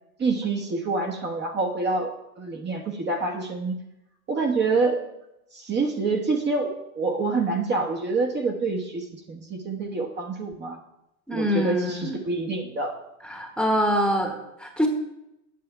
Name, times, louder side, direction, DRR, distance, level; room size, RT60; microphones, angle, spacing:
voice 1, 0.2-2.1 2.4-3.8 4.3-5.0 5.5-10.8 11.3-13.0, right 3 dB, 25° right, 1 dB, 1.2 m, -27 dB
voice 2, 11.3-12.2 13.2-14.9, equal, ahead, 2 dB, 1.3 m, -25 dB
8.5 x 6.7 x 5.6 m, 0.88 s
hypercardioid pair, 105°, 44 cm